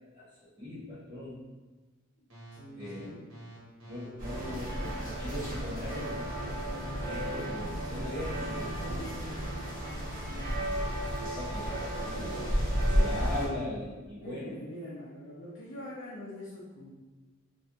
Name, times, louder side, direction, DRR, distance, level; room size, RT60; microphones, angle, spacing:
voice 1, 0.6-1.4 2.7-3.2 3.9-6.2 7.0-9.4 10.6-11.8 12.7-14.5, left 1 dB, 20° right, -11 dB, 1.3 m, -40 dB
voice 2, 2.2-3.3 12.9-13.2 14.2-16.9, left 1 dB, 65° left, -8 dB, 0.6 m, -44 dB
sound 1, 2.3-10.0, equal, 75° right, 1.2 m, -47 dB
sound 2, 4.2-13.5, equal, 45° right, 1.0 m, -32 dB
3.2 x 2.5 x 2.8 m, 1.3 s
head